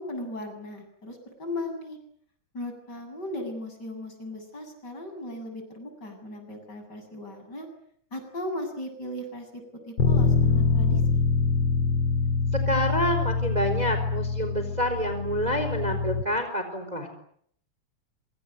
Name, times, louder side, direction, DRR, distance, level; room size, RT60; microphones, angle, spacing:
voice 1, 0.0-2.0 2.5-7.7 8.1-11.2, left 1 dB, 35° left, 6 dB, 8.4 m, -37 dB
Bass guitar, 10.0-16.2, left 5 dB, 60° left, 2.9 m, -25 dB
voice 2, 12.7-17.1, equal, 15° right, 7 dB, 4.2 m, -28 dB
27.0 x 26.0 x 8.0 m, 0.66 s
omnidirectional pair, 3.3 m